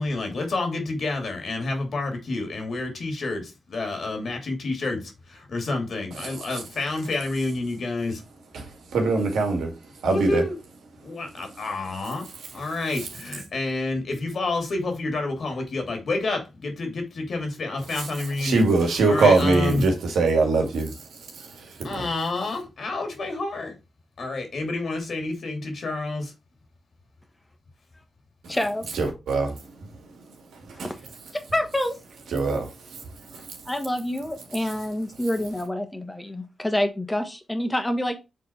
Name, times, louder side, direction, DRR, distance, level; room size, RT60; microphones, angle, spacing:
voice 1, 0.0-8.2 10.1-10.5 11.0-12.3 12.5-18.6 19.1-19.8 21.8-23.7 24.2-26.3, left 2 dB, 65° left, 2.6 m, -29 dB
voice 2, 6.1-6.7 8.5-10.5 11.2-11.7 11.9-13.1 17.9-22.1 28.4-28.6 28.9-30.9 32.3-33.7 34.6-34.7, right 3 dB, 90° right, 1.8 m, -25 dB
voice 3, 28.5-28.9 30.7-31.0 31.5-32.0 33.6-38.2, left 1 dB, 15° left, 1.5 m, -27 dB
6.2 x 3.7 x 4.5 m
cardioid pair, 60°, 0 cm